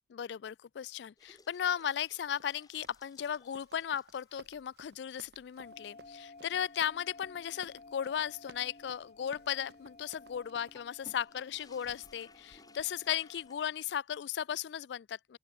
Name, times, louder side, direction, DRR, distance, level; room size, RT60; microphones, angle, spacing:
voice 1, 0.1-15.4, left 9 dB, 70° left, 0.3 m, -36 dB
sound 1, 1.2-4.8 5.2-5.3 5.8-5.9 6.4-14.0, left 2 dB, 20° left, 4.8 m, -62 dB
Run, 2.4-10.9, right 2 dB, 65° right, 2.7 m, -58 dB
sound 2, 5.6-13.6, left 3 dB, 40° left, 0.9 m, -55 dB
open air
head